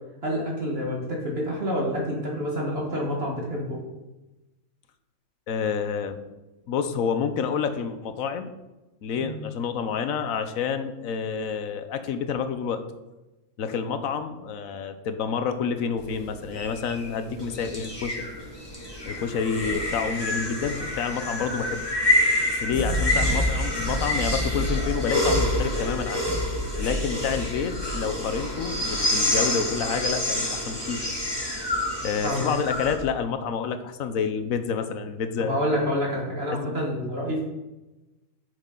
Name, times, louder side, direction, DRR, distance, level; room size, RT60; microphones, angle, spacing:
voice 1, 0.2-3.8 9.2-9.5 32.2-32.5 35.4-37.4, equal, 50° right, -2 dB, 2.0 m, -28 dB
voice 2, 5.5-6.2 6.7-8.5 9.0-12.8 13.6-18.3 19.0-21.8 22.6-26.2 26.8-31.0 32.0-35.8 36.5-36.8, left 6 dB, 90° left, 9 dB, 1.2 m, -28 dB
sound 1, 16.0-32.9, left 1 dB, 20° left, 2.3 m, -27 dB
9.4 x 8.6 x 3.9 m, 1.0 s
omnidirectional pair, 1.4 m